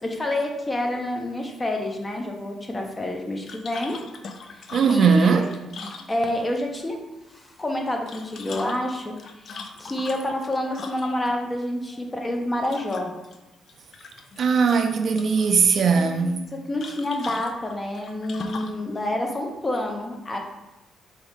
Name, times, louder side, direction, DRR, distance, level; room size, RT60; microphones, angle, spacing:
voice 1, 0.0-4.0 4.5-5.5 6.1-7.0 7.3-13.1 15.9-16.4 16.7-20.4, left 1 dB, 20° left, 0.7 m, -28 dB
sound 1, 3.5-6.6 7.9-11.3 12.6-13.4 13.7-14.4 14.7-15.5 16.8-18.8, left 4 dB, 55° left, 0.4 m, -40 dB
voice 2, 4.7-5.5 14.4-16.4, right 5 dB, 55° right, 0.4 m, -19 dB
4.6 x 2.7 x 3.4 m
cardioid pair, 90°, 0 cm